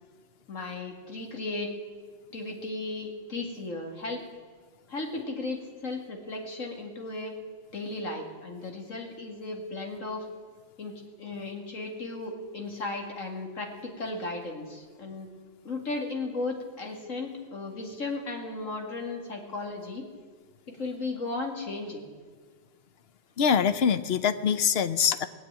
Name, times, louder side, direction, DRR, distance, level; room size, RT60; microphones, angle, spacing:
voice 1, 0.5-1.7 2.3-4.2 4.9-7.3 7.7-10.3 10.8-15.3 15.6-20.0 20.7-22.0, left 2 dB, 90° left, 2 dB, 2.5 m, -35 dB
voice 2, 23.4-25.3, left 7 dB, 60° left, 12 dB, 0.9 m, -24 dB
18.5 x 8.1 x 9.0 m, 1.5 s
omnidirectional pair, 1.3 m